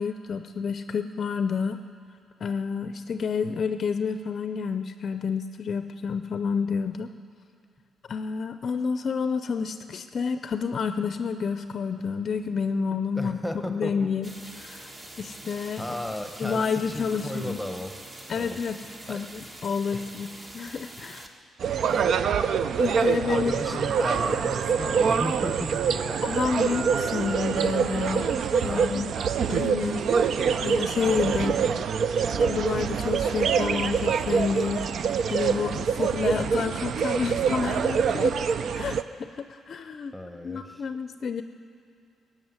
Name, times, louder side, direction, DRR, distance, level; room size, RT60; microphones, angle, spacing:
voice 1, 0.0-1.8 2.4-7.1 8.1-13.4 13.7-14.9 15.2-16.0 16.4-17.6 18.3-18.8 19.1-21.3 22.8-23.5 26.2-29.1 29.5-30.1 30.6-31.6 32.3-38.3 38.7-40.1 40.4-41.4, left 5 dB, 55° left, 9 dB, 0.5 m, -29 dB
voice 2, 13.1-14.1 15.8-17.9 18.4-18.6 19.1-19.2 19.9-20.1 21.8-22.2 23.2-26.3 28.6-28.9 40.1-40.8, left 1 dB, 5° left, 6 dB, 1.0 m, -35 dB
sound 1, 14.2-21.3, right 1 dB, 35° right, 1.4 m, -44 dB
sound 2, 21.6-39.0, right 6 dB, 65° right, 0.4 m, -25 dB
15.5 x 7.6 x 9.6 m, 2.4 s
cardioid pair, 80°, 0 cm